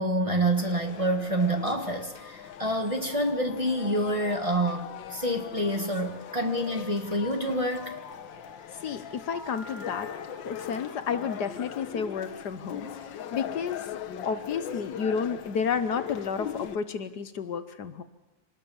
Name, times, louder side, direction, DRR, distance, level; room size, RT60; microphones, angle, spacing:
voice 1, 0.0-7.9, right 1 dB, 20° right, 4 dB, 1.6 m, -27 dB
sound 1, 0.5-16.8, left 9 dB, 90° left, 1.8 m, -40 dB
voice 2, 8.8-10.1 10.4-18.0, left 6 dB, 65° left, 11 dB, 1.5 m, -31 dB
Telephone, 9.3-10.2 11.3-13.4 14.2-15.7, left 2 dB, 50° left, 6.6 m, -51 dB
26.0 x 20.0 x 7.2 m, 0.99 s
omnidirectional pair, 2.0 m